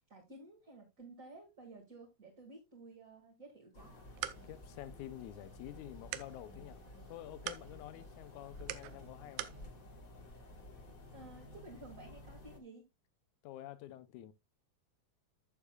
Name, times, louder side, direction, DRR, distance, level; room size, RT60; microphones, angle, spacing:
voice 1, 0.0-3.9 10.7-10.8 11.1-12.9, right 2 dB, 30° right, 2.1 m, -54 dB
sound 1, 3.7-12.6, left 1 dB, 35° left, 1.7 m, -53 dB
sound 2, 3.8-9.6, right 13 dB, 85° right, 2.2 m, -47 dB
voice 2, 4.4-9.6 13.4-14.3, left 13 dB, 85° left, 2.1 m, -49 dB
13.5 x 7.2 x 2.3 m
omnidirectional pair, 3.4 m